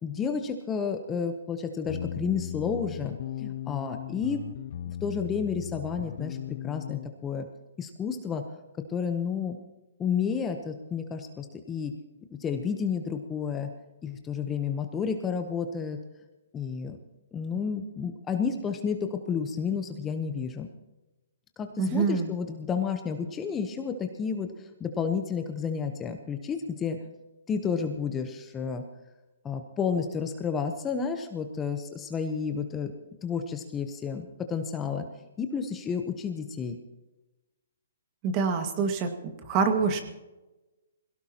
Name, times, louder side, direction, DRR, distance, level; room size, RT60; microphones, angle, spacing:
voice 1, 0.0-4.4 5.0-7.5 7.8-8.4 8.9-9.6 10.0-11.9 12.4-13.7 14.0-16.0 16.5-17.0 17.3-20.7 21.6-27.0 27.5-28.8 29.4-32.9 33.2-35.0 35.4-36.8, left 6 dB, 15° left, 6 dB, 0.9 m, -31 dB
sound 1, 1.9-7.1, left 11 dB, 50° left, 0.5 m, -37 dB
voice 2, 21.8-22.3 38.2-39.1 39.5-40.0, right 5 dB, 30° right, 6 dB, 1.9 m, -25 dB
22.0 x 17.0 x 3.0 m, 1.1 s
hypercardioid pair, 155°, 0 cm